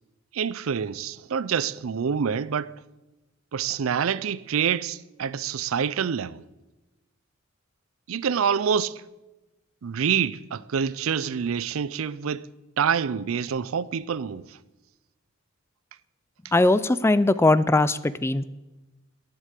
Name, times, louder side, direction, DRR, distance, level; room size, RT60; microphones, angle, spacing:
voice 1, 0.3-2.7 3.5-6.4 8.1-9.0 9.8-12.5 12.8-14.6, right 7 dB, 70° right, 0.5 m, -26 dB
voice 2, 16.5-18.5, left 2 dB, 10° left, 0.3 m, -20 dB
11.0 x 9.4 x 8.2 m
head